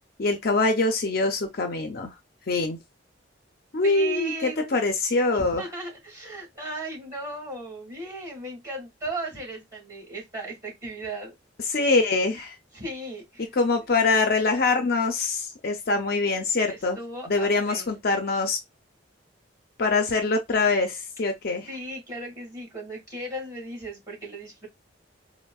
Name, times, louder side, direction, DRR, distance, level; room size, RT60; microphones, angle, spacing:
voice 1, 0.2-2.1 2.5-2.8 3.7-5.6 11.7-12.5 13.6-17.0 17.3-18.6 19.8-21.7, left 3 dB, 55° left, 0.5 m, -24 dB
voice 2, 3.8-4.8 5.3-11.3 12.7-13.9 16.7-18.0 21.7-24.7, right 2 dB, 20° right, 2.2 m, -37 dB
4.3 x 2.1 x 2.3 m
head